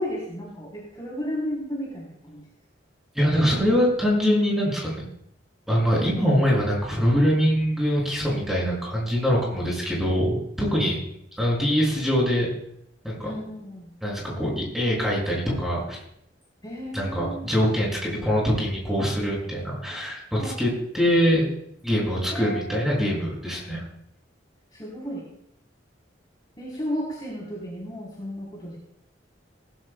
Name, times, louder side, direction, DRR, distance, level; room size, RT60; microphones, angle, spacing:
voice 1, 0.0-2.4 13.2-13.9 16.6-17.5 20.4-20.6 22.3-23.0 24.7-25.2 26.6-28.8, equal, 25° left, -4 dB, 3.7 m, -33 dB
voice 2, 3.1-5.0 5.7-11.0 11.4-12.5 13.0-13.3 14.0-16.0 16.9-21.5 21.8-23.8, equal, ahead, -4 dB, 6.5 m, -23 dB
19.0 x 16.0 x 2.3 m, 0.74 s
head